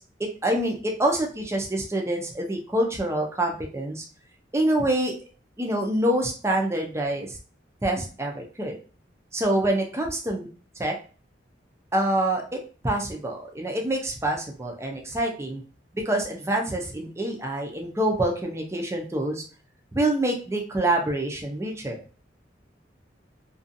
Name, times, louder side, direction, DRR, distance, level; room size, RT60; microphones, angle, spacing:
voice 1, 0.0-4.0 4.5-5.1 5.6-7.4 7.8-8.8 9.3-10.5 10.8-11.0 11.9-15.6 15.9-19.4 19.9-22.0, right 1 dB, 15° right, 1 dB, 0.4 m, -26 dB
2.5 x 2.3 x 2.6 m, 0.38 s
head